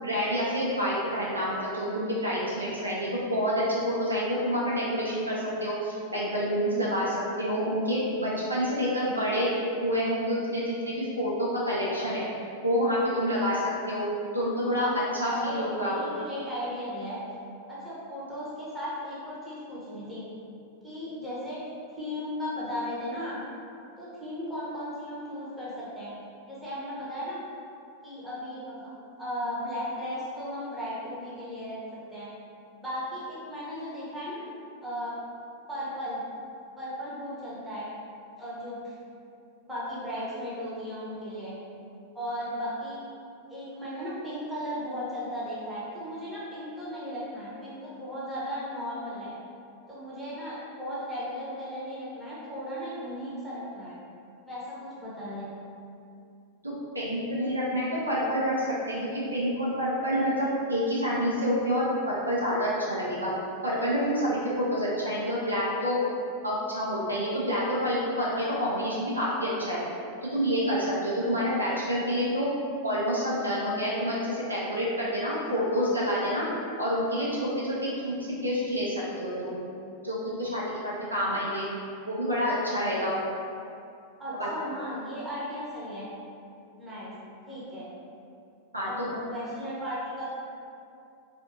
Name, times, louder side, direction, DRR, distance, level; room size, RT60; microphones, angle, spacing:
voice 1, 0.0-9.5 9.8-12.2 12.6-16.0 56.6-63.3 63.6-66.0 66.4-69.8 70.3-72.5 72.8-76.4 76.8-79.6 80.0-81.6 82.1-83.2 84.4-84.5 88.7-89.1, equal, 80° right, -7 dB, 0.6 m, -28 dB
voice 2, 15.3-17.2 17.7-20.2 20.8-21.6 22.0-23.4 24.0-26.1 26.5-27.4 28.0-31.8 32.1-32.3 32.8-34.5 34.8-35.1 35.7-36.2 36.8-37.9 38.4-39.0 39.6-41.5 42.1-43.0 43.5-49.3 49.9-53.9 54.4-55.5 84.2-86.1 86.8-87.1 87.5-87.9 88.8-90.3, equal, 5° right, -10 dB, 0.9 m, -36 dB
2.5 x 2.5 x 2.7 m, 2.5 s
figure-of-eight pair, 90°, 0 cm